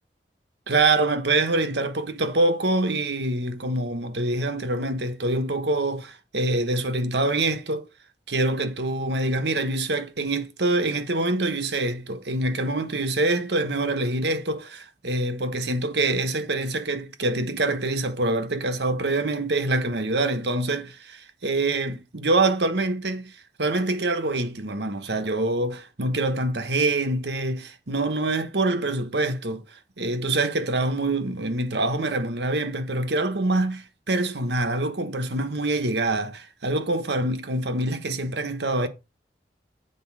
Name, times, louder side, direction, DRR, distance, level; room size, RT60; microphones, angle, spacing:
voice 1, 0.7-7.9 8.3-23.3 23.6-38.9, right 2 dB, 80° right, 1.2 m, -25 dB
8.0 x 4.3 x 6.2 m
head